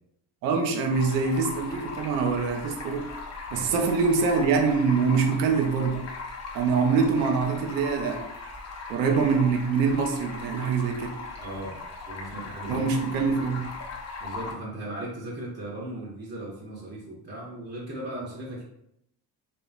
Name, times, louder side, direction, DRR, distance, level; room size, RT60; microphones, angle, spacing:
voice 1, 0.4-3.1 3.5-6.0 6.5-8.2 8.9-11.2 12.7-13.7, right 5 dB, 90° right, 4 dB, 0.6 m, -24 dB
Stream, 0.9-14.5, left 4 dB, 30° left, 0.7 m, -39 dB
voice 2, 3.5-3.8 11.4-11.8 12.1-12.8 14.2-18.6, right 1 dB, 20° right, -3 dB, 0.7 m, -37 dB
2.8 x 2.1 x 2.5 m, 0.76 s
hypercardioid pair, 55°, 49 cm